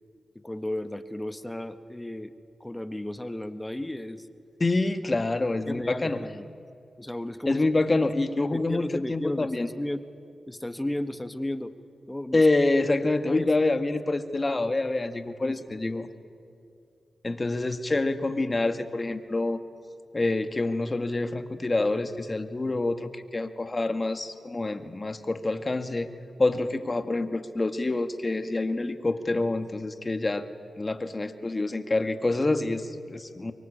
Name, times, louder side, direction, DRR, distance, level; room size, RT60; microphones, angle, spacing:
voice 1, 0.3-2.3 2.6-4.3 5.0-5.2 5.7-6.5 7.0-7.7 8.5-10.0 10.5-11.7 12.1-12.5 13.3-13.5 13.9-14.0 15.4-16.0, left 1 dB, 15° left, 11 dB, 1.6 m, -34 dB
voice 2, 4.6-6.2 7.5-9.7 12.3-16.1 17.2-19.6 20.1-26.1 26.4-30.5 30.8-33.5, left 2 dB, 35° left, 9 dB, 2.0 m, -26 dB
24.0 x 23.0 x 8.8 m, 2.5 s
cardioid pair, 45°, 0 cm